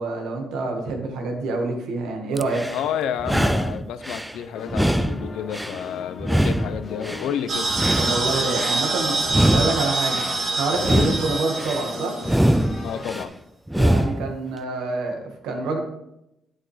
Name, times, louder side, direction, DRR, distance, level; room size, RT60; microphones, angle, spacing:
voice 1, 0.0-2.6 8.0-9.2 9.5-10.2 10.6-12.2 13.7-15.8, right 3 dB, 90° right, 3 dB, 1.6 m, -27 dB
sound 1, 2.4-2.8 3.2-4.3 4.7-5.8 6.2-7.3 7.7-8.8 9.3-10.3 10.8-11.8 12.2-13.2 13.7-14.3, right 1 dB, 5° right, 0.3 m, -23 dB
voice 2, 2.7-7.7 10.9-11.2 12.8-13.3, left 9 dB, 85° left, 12 dB, 0.6 m, -30 dB
sound 2, 4.5-13.3, left 4 dB, 40° left, 0.8 m, -38 dB
sound 3, 7.5-12.7, right 3 dB, 55° right, 2.1 m, -26 dB
8.4 x 7.6 x 3.3 m, 0.84 s
cardioid pair, 90°, 0 cm